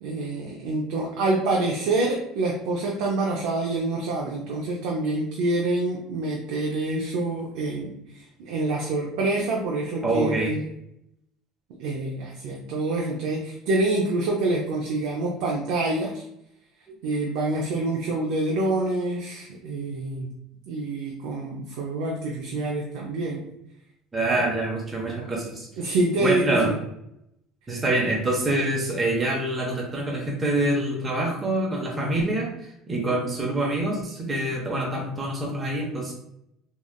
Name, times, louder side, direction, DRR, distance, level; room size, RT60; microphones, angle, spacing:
voice 1, 0.0-10.6 11.8-16.2 17.0-20.3 20.7-23.4 25.8-26.7, right 2 dB, 75° right, -1 dB, 0.5 m, -26 dB
voice 2, 10.0-10.5 24.1-25.7 26.2-26.7 27.7-36.1, right 1 dB, 25° right, -2 dB, 0.8 m, -26 dB
3.5 x 2.3 x 2.2 m, 0.80 s
supercardioid pair, 90°, 0 cm